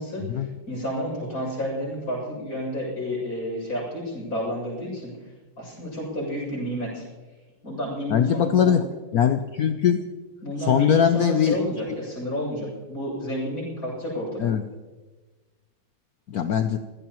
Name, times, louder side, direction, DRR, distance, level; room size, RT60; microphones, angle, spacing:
voice 1, 0.0-5.1 5.6-7.0 7.6-8.8 10.4-14.5, equal, 45° left, -3 dB, 7.8 m, -30 dB
voice 2, 8.1-8.8 9.1-10.0 10.6-11.6 11.9-12.0 14.4-14.6 16.3-16.8, left 8 dB, 65° left, 8 dB, 1.0 m, -21 dB
26.5 x 16.0 x 3.0 m, 1.3 s
omnidirectional pair, 2.1 m